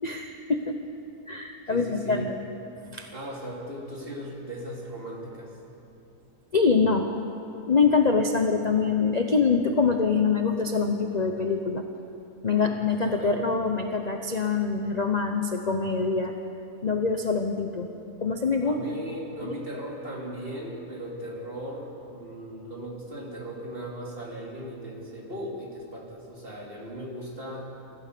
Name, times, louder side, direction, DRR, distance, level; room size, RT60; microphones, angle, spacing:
voice 1, 0.0-0.8 1.3-2.3 2.9-3.1 6.5-7.1 7.7-11.8 12.4-16.3 16.8-17.9 18.2-18.8 19.4-19.5, left 4 dB, 30° left, 4 dB, 0.9 m, -24 dB
voice 2, 1.7-2.2 3.1-5.6 12.5-12.7 13.2-13.4 18.6-27.7, equal, 35° right, -2 dB, 3.5 m, -37 dB
25.0 x 15.5 x 6.9 m, 3.0 s
omnidirectional pair, 1.7 m